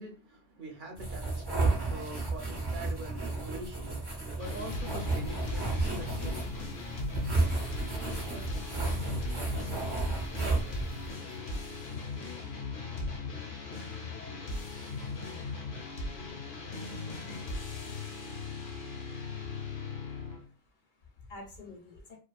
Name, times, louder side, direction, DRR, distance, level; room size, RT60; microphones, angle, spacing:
voice 1, 0.0-6.5, right 2 dB, 60° right, 2 dB, 0.7 m, -44 dB
sound 1, 1.0-11.1, right 3 dB, 25° right, 0.8 m, -33 dB
sound 2, 4.4-20.4, left 3 dB, 85° left, 1.0 m, -38 dB
voice 2, 19.6-22.2, left 2 dB, 60° left, 2 dB, 0.6 m, -51 dB
2.4 x 2.3 x 2.2 m, 0.37 s
omnidirectional pair, 1.0 m